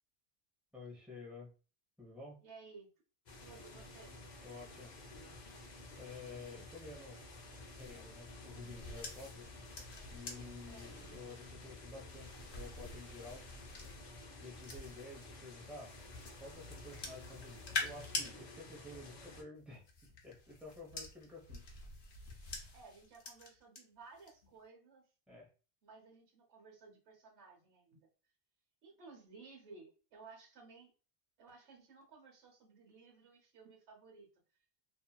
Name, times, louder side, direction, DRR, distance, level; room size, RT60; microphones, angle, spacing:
voice 1, 0.7-1.5 2.0-2.4 4.4-4.9 6.0-7.2 7.7-9.5 10.1-13.4 14.4-16.0 16.4-19.8 20.2-21.6 22.4-22.8 25.3-25.5, left 3 dB, ahead, -4 dB, 0.7 m, -51 dB
voice 2, 2.4-2.9 3.4-4.1 10.7-11.0 22.7-25.0 25.8-28.1 28.8-30.9 31.4-34.3, right 4 dB, 75° right, -1 dB, 1.2 m, -57 dB
sound 1, 3.3-19.4, left 2 dB, 50° left, 0.6 m, -52 dB
sound 2, 7.7-15.3 15.8-18.3 19.6-23.8 24.2-24.5, left 3 dB, 70° left, 1.0 m, -46 dB
2.8 x 2.7 x 2.3 m, 0.36 s
omnidirectional pair, 1.1 m